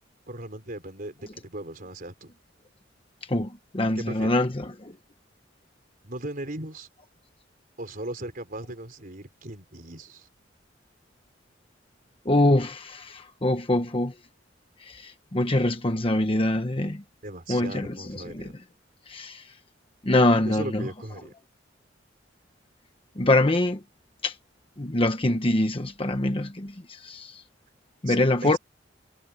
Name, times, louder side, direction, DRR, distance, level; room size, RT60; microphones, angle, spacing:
voice 1, 0.3-2.3 3.9-4.4 6.0-6.9 7.8-10.3 17.2-18.5 20.4-21.3 28.0-28.6, right 1 dB, 50° right, 4.4 m, -38 dB
voice 2, 3.3-4.9 12.2-14.1 14.8-17.0 17.5-18.4 19.1-19.4 20.0-20.8 23.2-23.8 24.2-24.3 24.8-27.4 28.0-28.6, left 1 dB, 30° left, 1.1 m, -24 dB
head